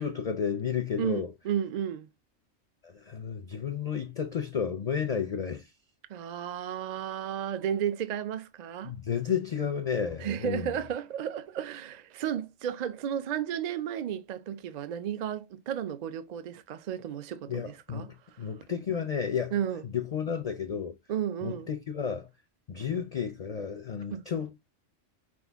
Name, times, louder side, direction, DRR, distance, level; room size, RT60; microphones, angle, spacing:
voice 1, 0.0-1.3 2.8-5.7 8.8-10.7 17.5-19.5 19.9-21.0 21.4-22.3 22.7-24.5, left 7 dB, 50° left, 0.4 m, -32 dB
voice 2, 1.0-2.1 6.1-8.9 10.2-18.5 19.5-19.8 21.1-21.7 24.1-24.2, right 9 dB, 65° right, 0.4 m, -33 dB
6.1 x 2.2 x 3.4 m
omnidirectional pair, 1.3 m